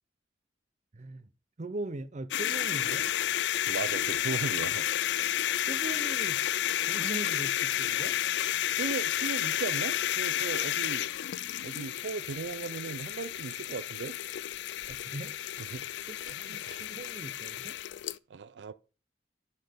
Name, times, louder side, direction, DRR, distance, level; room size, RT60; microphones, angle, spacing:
voice 1, 0.9-1.3 1.6-3.1 5.6-6.4 6.9-8.2 14.9-15.3 16.1-17.8, right 2 dB, 40° right, 0.6 m, -40 dB
sound 1, 2.3-18.2, left 11 dB, 75° left, 0.3 m, -31 dB
voice 2, 3.7-4.9 8.8-11.1 11.6-14.2 15.7-15.9 16.3-16.8 18.3-18.7, right 5 dB, 85° right, 0.4 m, -37 dB
11.5 x 4.3 x 5.1 m
head